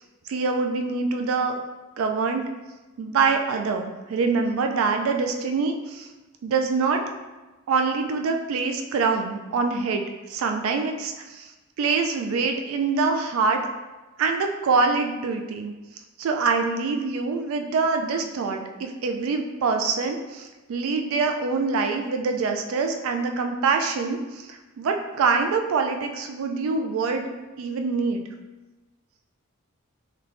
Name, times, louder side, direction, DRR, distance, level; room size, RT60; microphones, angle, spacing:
voice 1, 0.3-1.6 2.0-2.4 3.0-6.1 6.4-7.0 7.7-11.5 11.8-13.6 14.2-15.7 16.2-27.3 27.6-28.2, right 4 dB, 70° right, 6 dB, 0.3 m, -25 dB
3.4 x 3.0 x 2.5 m, 1.1 s
head